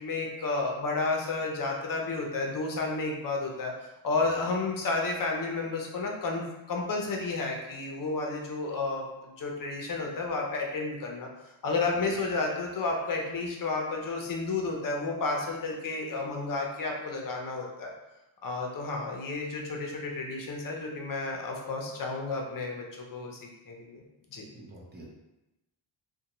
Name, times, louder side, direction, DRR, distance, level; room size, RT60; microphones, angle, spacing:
voice 1, 0.0-3.7 4.0-6.4 6.7-11.3 11.6-17.9 18.4-24.0 24.3-24.5, left 3 dB, 45° left, 0 dB, 0.6 m, -31 dB
voice 2, 24.5-25.1, right 1 dB, 20° right, -4 dB, 0.6 m, -49 dB
2.6 x 2.2 x 2.9 m, 0.95 s
wide cardioid pair, 125°, 47 cm